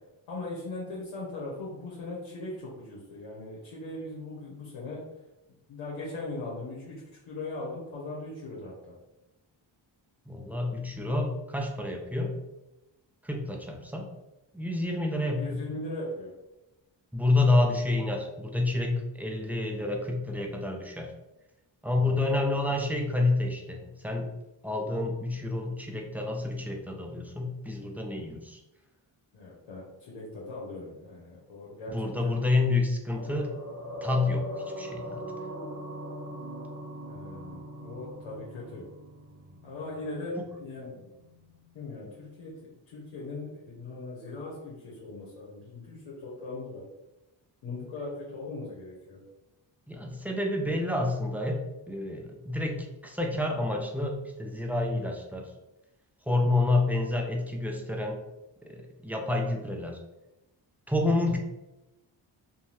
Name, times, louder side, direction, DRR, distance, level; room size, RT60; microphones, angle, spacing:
voice 1, 0.3-5.0 5.7-9.0 15.3-16.3 21.9-22.2 29.3-32.4 37.1-38.8 39.6-41.1 41.7-42.5 42.9-46.9 47.6-49.2, left 2 dB, 80° left, -5 dB, 0.9 m, -39 dB
voice 2, 10.3-12.4 13.2-14.1 14.5-15.6 17.1-21.1 21.8-24.3 24.6-28.6 31.9-33.5 34.0-34.5 34.8-35.2 40.4-40.5 49.9-51.6 51.9-55.5 56.3-58.2 58.7-60.0 60.9-61.4, left 2 dB, 5° right, 1 dB, 0.3 m, -28 dB
sound 1, 33.1-41.8 42.0-42.2, equal, 40° right, 1.0 m, -41 dB
2.6 x 2.2 x 3.1 m, 0.96 s
cardioid pair, 70°, 47 cm